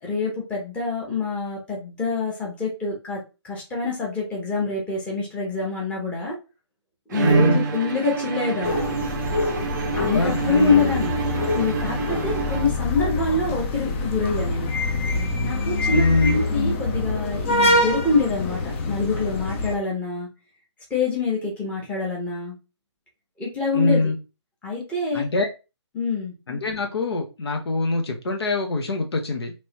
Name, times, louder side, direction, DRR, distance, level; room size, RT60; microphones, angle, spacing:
voice 1, 0.0-6.4 7.1-8.8 10.0-14.7 15.4-20.3 20.9-22.5 23.4-24.1 24.6-25.2 25.9-26.3, left 3 dB, 10° left, -3 dB, 1.1 m, -26 dB
Bowed string instrument, 7.1-13.1, right 5 dB, 40° right, 0.5 m, -27 dB
voice 2, 7.2-7.6 10.0-10.9 15.9-16.4 23.7-24.1 25.1-25.5 26.5-29.5, left 2 dB, 60° left, 3 dB, 0.8 m, -24 dB
sound 1, 8.6-19.7, left 2 dB, 25° left, 0.6 m, -25 dB
3.0 x 3.0 x 2.9 m, 0.29 s
figure-of-eight pair, 145°, 15 cm